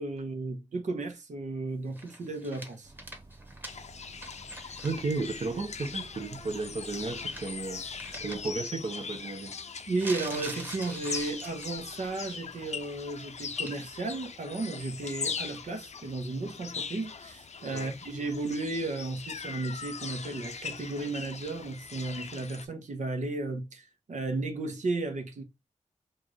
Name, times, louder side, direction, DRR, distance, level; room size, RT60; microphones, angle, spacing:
voice 1, 0.0-2.9 4.6-4.8 9.9-25.4, right 3 dB, 80° right, 1.0 m, -34 dB
sound 1, 1.9-4.9 5.3-5.4 6.9-7.6 8.0-8.3 9.9-11.9 12.2-12.6 13.7-13.8, right 1 dB, 15° right, 1.3 m, -43 dB
Bus, 2.8-8.6, right 2 dB, 30° right, 1.1 m, -53 dB
sound 2, 3.7-22.7, left 5 dB, 65° left, 0.5 m, -40 dB
voice 2, 4.8-7.8 8.2-9.5 17.7-17.9, right 3 dB, 55° right, 0.8 m, -34 dB
4.6 x 2.5 x 2.9 m
wide cardioid pair, 80°, 12 cm